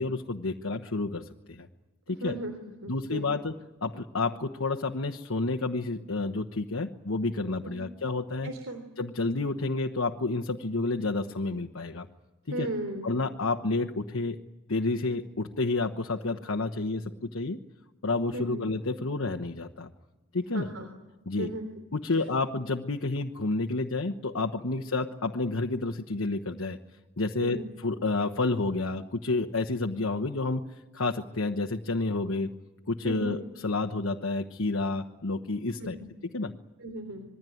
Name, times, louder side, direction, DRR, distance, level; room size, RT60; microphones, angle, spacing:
voice 1, 0.0-1.7 2.1-2.3 2.9-3.6 3.8-8.5 9.0-12.1 12.5-12.7 13.0-14.4 14.7-17.6 18.0-19.9 20.3-20.7 21.3-21.5 21.9-26.8 27.2-30.6 30.9-32.5 32.9-36.0 36.3-36.5, left 3 dB, 75° left, 4 dB, 1.2 m, -30 dB
voice 2, 2.2-2.5 2.8-3.4 7.6-7.8 8.4-8.8 12.5-13.1 18.3-18.6 20.5-20.9 21.4-21.7 27.4-27.6 33.0-33.4 35.8-36.1 36.8-37.2, right 1 dB, 80° right, 6 dB, 3.3 m, -36 dB
26.5 x 21.5 x 9.4 m, 1.1 s
head